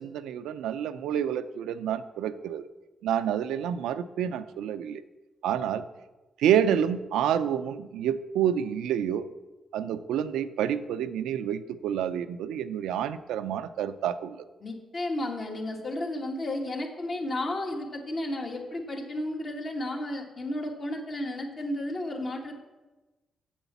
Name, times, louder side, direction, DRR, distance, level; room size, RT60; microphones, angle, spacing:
voice 1, 0.0-2.7 3.0-5.0 5.4-5.8 6.4-9.3 9.7-14.5, right 9 dB, 90° right, 12 dB, 0.4 m, -28 dB
voice 2, 14.6-22.5, left 1 dB, 50° left, 2 dB, 2.0 m, -33 dB
7.3 x 7.1 x 7.0 m, 1.1 s
supercardioid pair, 60°, 0 cm